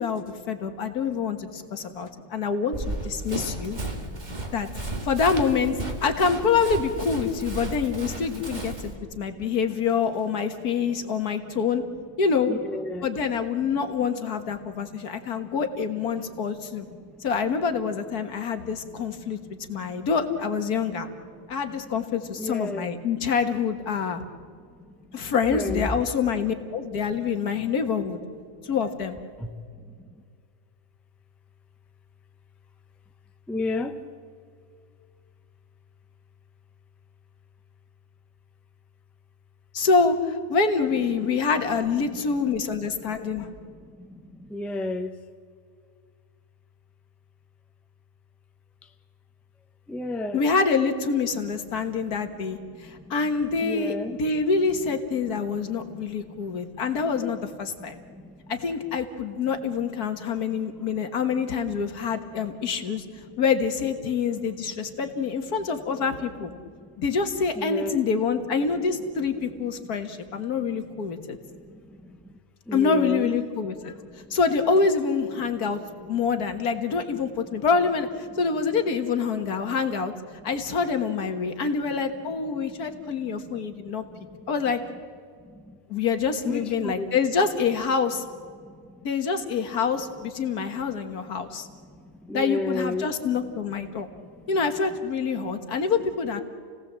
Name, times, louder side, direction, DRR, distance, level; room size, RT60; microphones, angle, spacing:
voice 1, 0.0-3.8 4.5-4.7 5.0-11.8 12.2-12.5 13.0-16.9 17.2-19.4 19.7-21.1 21.5-24.2 25.1-28.2 28.6-29.2 39.7-43.5 50.3-58.0 58.5-63.1 63.4-66.5 67.0-71.4 72.7-73.9 74.3-75.8 76.1-78.1 78.4-80.1 80.4-84.0 84.5-84.8 85.9-88.2 89.0-91.7 92.3-94.1 94.5-96.4, left 5 dB, 70° left, 7 dB, 2.0 m, -26 dB
voice 2, 1.9-2.3 3.8-4.4 8.9-9.0 9.3-9.4 10.9-11.0 11.5-11.6 12.5-13.1 14.6-15.6 16.4-17.3 18.6-20.1 21.4-21.5 22.3-22.9 25.0-25.9 28.5-28.6 29.4-30.1 33.5-34.0 42.1-42.2 43.1-45.1 48.8-48.9 49.9-50.4 51.8-51.9 52.3-53.1 53.6-54.2 55.8-56.9 57.2-57.5 57.8-58.5 60.5-61.0 66.8-67.0 67.6-68.0 70.3-72.3 72.7-73.3 74.1-74.4 77.1-77.2 81.5-81.6 82.5-84.4 85.4-85.8 86.4-87.1 88.6-89.1 91.2-93.1 93.9-94.4 95.4-95.5, left 2 dB, ahead, 7 dB, 0.7 m, -36 dB
Run, 2.7-8.9, right 2 dB, 30° right, 2.1 m, -34 dB
29.5 x 17.5 x 7.5 m, 2.1 s
omnidirectional pair, 1.7 m